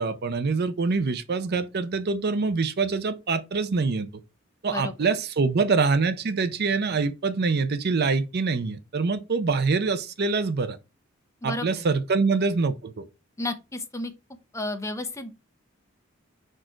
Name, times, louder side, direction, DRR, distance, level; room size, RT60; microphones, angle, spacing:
voice 1, 0.0-4.1 4.6-10.8 11.4-13.0, right 4 dB, 50° right, 0.6 m, -25 dB
voice 2, 13.4-14.1 14.5-15.3, left 2 dB, 15° left, 0.8 m, -31 dB
4.8 x 4.5 x 4.5 m
head